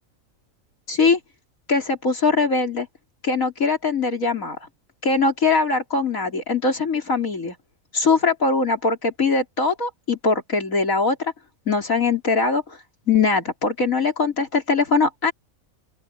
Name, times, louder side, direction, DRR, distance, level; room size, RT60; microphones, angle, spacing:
voice 1, 0.9-1.2 1.7-2.9 3.2-4.6 5.0-7.6 7.9-11.3 11.7-12.8 13.1-15.3, left 4 dB, 75° left, 4.1 m, -21 dB
open air
omnidirectional pair, 1.4 m